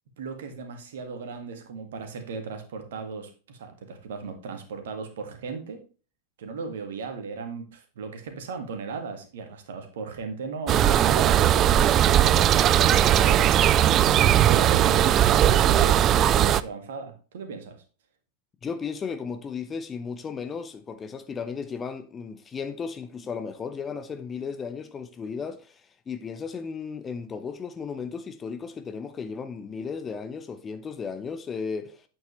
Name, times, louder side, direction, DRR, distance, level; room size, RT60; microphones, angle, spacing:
voice 1, 0.2-5.8 6.4-14.1 14.4-17.8, right 5 dB, 60° right, 1.9 m, -37 dB
sound 1, 10.7-16.6, right 11 dB, 30° right, 0.4 m, -19 dB
voice 2, 18.6-25.8 26.1-32.0, left 5 dB, 20° left, 0.9 m, -35 dB
9.4 x 8.5 x 3.2 m
figure-of-eight pair, 90°, 0 cm